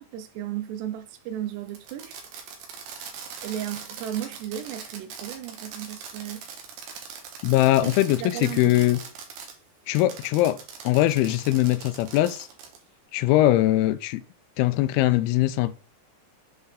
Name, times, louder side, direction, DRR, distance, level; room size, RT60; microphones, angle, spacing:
voice 1, 0.0-2.2 3.4-6.5 7.8-7.9 8.2-8.8, right 11 dB, 85° right, 2.8 m, -34 dB
Fireworks, 1.7-9.5 10.0-12.8, right 6 dB, 70° right, 2.6 m, -41 dB
voice 2, 7.4-9.0 9.9-12.5 13.1-14.2 14.6-15.8, left 15 dB, 85° left, 2.2 m, -21 dB
7.6 x 4.4 x 3.5 m
omnidirectional pair, 4.9 m